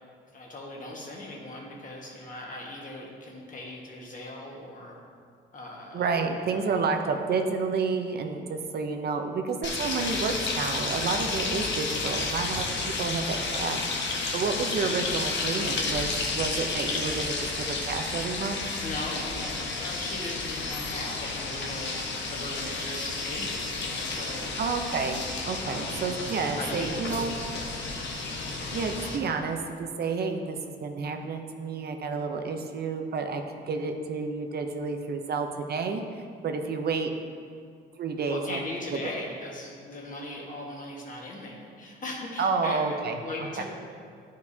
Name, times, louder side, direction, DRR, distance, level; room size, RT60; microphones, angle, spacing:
voice 1, 0.3-4.9 5.5-6.8 13.3-13.6 18.8-21.9 22.3-24.6 25.6-26.2 26.6-27.2 27.8-28.0 38.3-42.8 43.1-43.6, left 2 dB, 40° left, -2 dB, 1.5 m, -39 dB
voice 2, 5.9-18.6 24.6-27.4 28.7-37.1 38.0-38.6 38.9-39.0 42.4-43.6, right 4 dB, 55° right, 5 dB, 0.6 m, -30 dB
sound 1, 9.6-29.2, left 3 dB, 65° left, 1.0 m, -31 dB
10.5 x 4.7 x 2.7 m, 2.2 s
cardioid pair, 90°, 20 cm